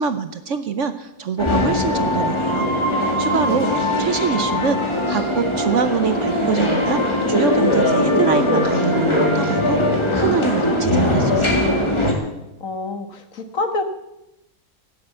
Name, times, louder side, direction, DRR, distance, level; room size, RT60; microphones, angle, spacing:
voice 1, 0.0-2.7 3.2-3.7 4.0-11.8, right 6 dB, 55° right, 10 dB, 1.0 m, -25 dB
sound 1, 1.4-12.1, left 1 dB, 15° left, 2.2 m, -20 dB
voice 2, 3.5-3.8 12.6-13.8, left 3 dB, 55° left, 7 dB, 1.8 m, -27 dB
17.0 x 7.8 x 8.2 m, 0.93 s
omnidirectional pair, 1.7 m